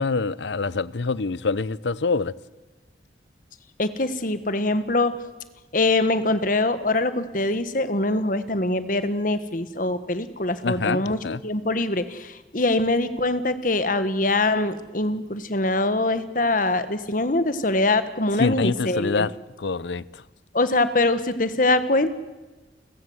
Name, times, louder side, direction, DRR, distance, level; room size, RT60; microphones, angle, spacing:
voice 1, 0.0-2.3 10.6-11.4 18.4-19.3 19.6-20.2, left 4 dB, 80° left, 0.7 m, -25 dB
voice 2, 3.8-5.1 5.7-19.3 20.5-22.1, left 2 dB, 50° left, 1.5 m, -23 dB
30.0 x 14.5 x 7.9 m
head